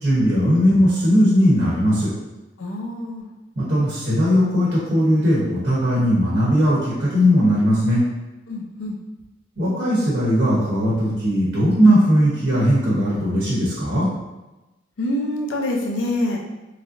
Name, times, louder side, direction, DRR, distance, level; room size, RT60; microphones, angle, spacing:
voice 1, 0.0-2.1 3.6-8.0 9.6-14.1, equal, 65° right, -7 dB, 0.8 m, -18 dB
voice 2, 2.6-3.3 8.5-9.0 15.0-16.4, left 1 dB, 85° left, 0 dB, 0.5 m, -25 dB
3.2 x 2.5 x 2.5 m, 1.1 s
head